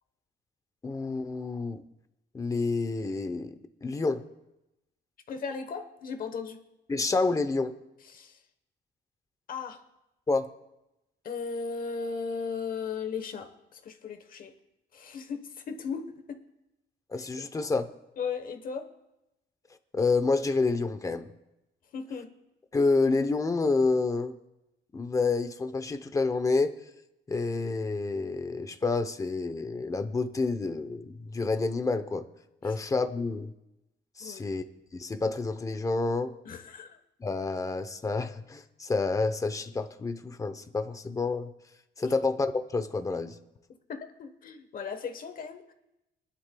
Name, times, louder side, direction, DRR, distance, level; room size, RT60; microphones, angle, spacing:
voice 1, 0.8-1.8 2.3-3.5 3.8-4.2 6.9-7.7 10.3-10.5 17.1-17.9 19.9-21.3 22.7-24.3 24.9-26.7 27.3-32.2 32.6-33.5 34.2-34.6 34.9-36.3 37.2-41.5 42.0-43.4, left 3 dB, 15° left, 9 dB, 0.7 m, -28 dB
voice 2, 5.3-6.6 8.1-8.4 9.5-9.8 11.2-14.5 14.9-16.4 17.4-17.5 18.2-18.9 21.9-22.3 32.6-32.8 34.2-34.5 36.4-37.0 42.0-42.1 43.9-45.7, left 5 dB, 50° left, 8 dB, 1.1 m, -37 dB
24.5 x 11.5 x 2.3 m, 0.92 s
cardioid pair, 150°, 19 cm